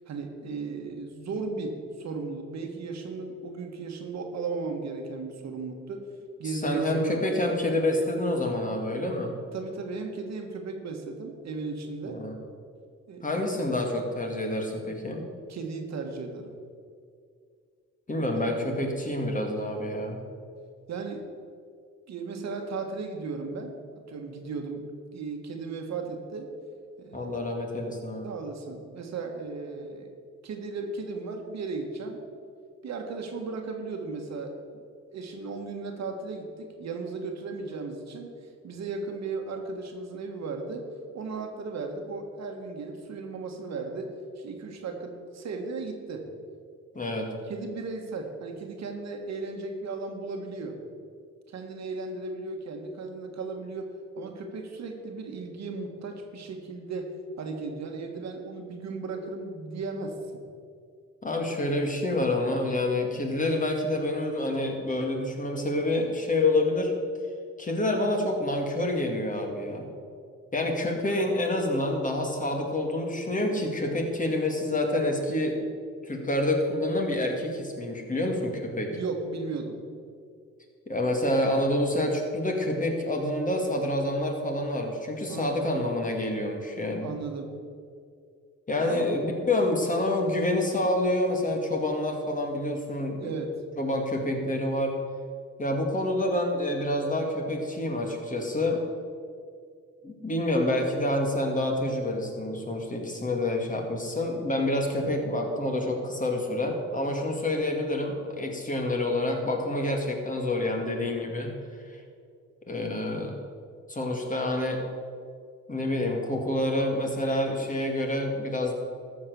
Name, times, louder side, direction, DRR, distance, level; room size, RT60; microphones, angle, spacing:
voice 1, 0.1-6.0 6.4-7.3 9.5-12.2 13.1-13.3 15.5-16.5 18.3-18.4 20.9-21.2 22.1-24.9 25.1-26.5 27.0-27.5 28.2-30.1 30.4-32.2 32.8-34.6 35.1-40.9 41.1-46.3 47.5-50.8 51.5-60.4 78.9-79.8 85.3-85.6 87.0-87.5 88.8-89.1 93.2-93.5, right 4 dB, 60° right, 4 dB, 1.6 m, -36 dB
voice 2, 6.4-9.3 12.1-12.3 13.2-15.2 18.1-20.2 27.1-28.3 46.9-47.3 61.2-66.9 67.6-69.9 70.5-75.6 76.0-79.0 80.9-87.1 88.7-93.3 93.8-94.9 95.6-98.8 100.0-111.5 111.8-112.0 112.7-113.4 113.9-114.8 115.7-118.7, left 1 dB, 25° left, 2 dB, 2.2 m, -28 dB
13.0 x 6.4 x 6.9 m, 2.2 s
cardioid pair, 90°, 30 cm